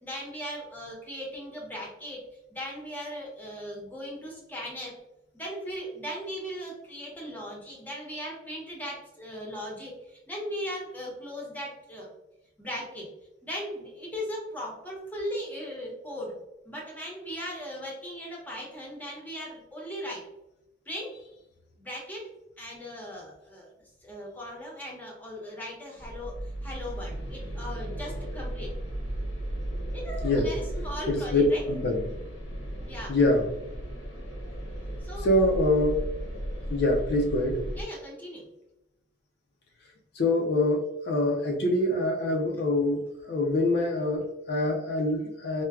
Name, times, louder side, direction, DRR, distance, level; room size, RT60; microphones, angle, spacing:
voice 1, 0.0-4.9 5.3-12.1 12.6-13.1 13.4-16.3 16.6-20.3 20.9-21.2 21.8-22.3 22.6-23.7 24.0-28.7 29.9-31.6 32.9-33.1 35.0-35.3 37.7-38.5, equal, 10° left, -3 dB, 0.8 m, -38 dB
sound 1, 26.0-37.8, right 1 dB, 75° left, 0.8 m, -35 dB
voice 2, 31.1-31.4 31.7-32.0 33.1-33.5 35.2-36.0 36.7-37.6 40.2-45.6, left 2 dB, 55° left, 1 dB, 0.5 m, -25 dB
4.4 x 2.1 x 2.3 m, 0.90 s
head